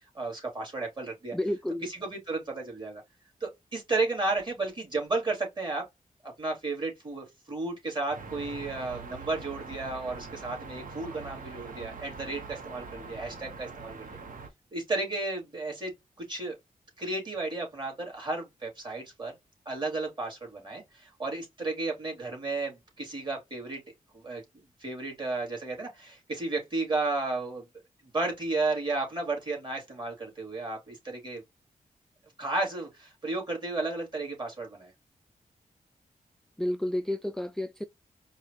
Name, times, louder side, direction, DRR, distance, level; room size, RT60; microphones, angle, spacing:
voice 1, 0.1-1.3 1.9-3.0 3.4-5.8 6.2-14.2 14.7-16.6 17.0-19.3 19.6-23.8 24.1-24.4 24.8-27.7 28.1-31.4 32.4-34.9, right 3 dB, 35° right, 2.8 m, -33 dB
voice 2, 1.3-1.8 36.6-37.8, left 1 dB, 5° left, 0.3 m, -30 dB
sound 1, 8.1-14.5, right 4 dB, 70° right, 1.2 m, -43 dB
4.7 x 2.4 x 3.0 m
cardioid pair, 75°, 14 cm